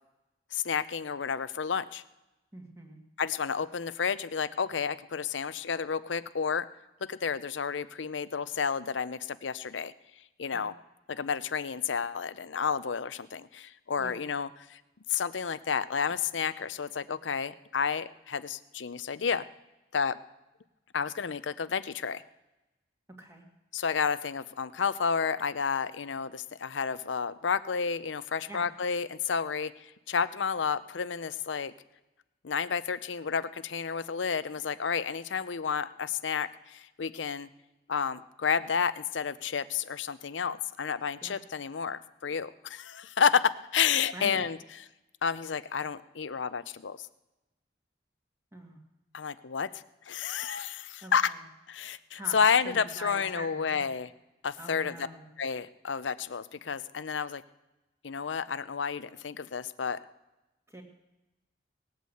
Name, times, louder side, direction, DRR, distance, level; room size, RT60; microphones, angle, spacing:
voice 1, 0.5-2.0 3.2-6.7 7.1-9.9 10.4-10.7 11.1-14.8 15.1-19.4 19.9-20.2 20.9-22.2 23.7-31.7 32.4-37.5 37.9-44.6 45.2-47.1 49.1-49.7 50.1-51.3 51.7-54.1 54.4-55.0 55.4-57.4 58.0-60.0, left 6 dB, 85° left, 15 dB, 0.6 m, -31 dB
voice 2, 2.5-3.0 10.5-10.6 14.0-14.2 23.2-23.4 28.5-28.7 41.2-41.3 44.1-44.5 48.5-48.8 51.0-51.4 52.2-52.4 52.6-53.9 54.6-55.3 60.7-60.8, right 1 dB, 15° right, 2 dB, 2.1 m, -44 dB
18.5 x 8.3 x 7.9 m, 1.0 s
head